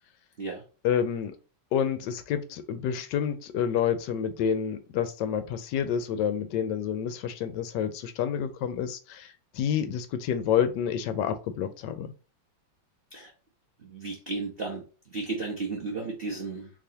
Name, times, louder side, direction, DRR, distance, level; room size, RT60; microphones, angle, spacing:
voice 1, 0.8-1.3 1.7-12.1, left 8 dB, 75° left, 1.1 m, -28 dB
voice 2, 13.8-16.7, right 3 dB, 70° right, 0.5 m, -34 dB
4.0 x 2.9 x 2.8 m
omnidirectional pair, 2.2 m